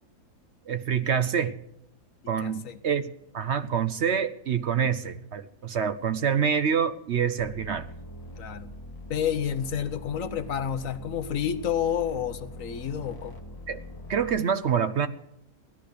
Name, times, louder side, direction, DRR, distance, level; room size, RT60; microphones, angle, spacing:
voice 1, 0.7-1.6 2.3-7.9 13.7-13.8 14.1-15.1, right 7 dB, 60° right, 11 dB, 0.9 m, -26 dB
voice 2, 2.2-2.8 8.4-8.7 9.1-13.4, left 8 dB, 65° left, 10 dB, 1.3 m, -30 dB
sound 1, 7.4-14.4, left 1 dB, 15° left, 1.8 m, -43 dB
16.5 x 12.0 x 6.8 m, 0.80 s
omnidirectional pair, 1.5 m